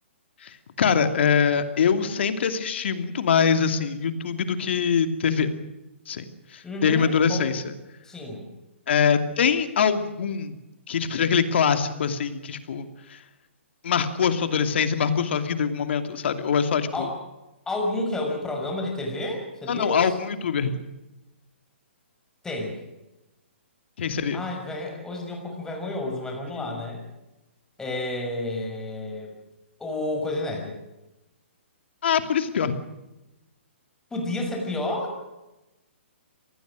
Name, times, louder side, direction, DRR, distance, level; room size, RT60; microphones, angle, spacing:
voice 1, 0.4-5.5 6.1-6.2 6.5-7.7 8.9-10.5 10.9-13.2 13.8-17.1 19.7-20.8 24.0-24.4 26.5-26.7 32.0-32.8, left 6 dB, 60° left, 9 dB, 2.7 m, -23 dB
voice 2, 6.6-7.5 8.0-8.5 16.9-17.2 17.7-20.1 22.4-22.8 24.3-27.0 27.8-29.3 29.8-30.8 34.1-35.2, left 1 dB, 10° left, 1 dB, 6.2 m, -30 dB
26.5 x 19.5 x 6.4 m, 0.99 s
hypercardioid pair, 140°, 7 cm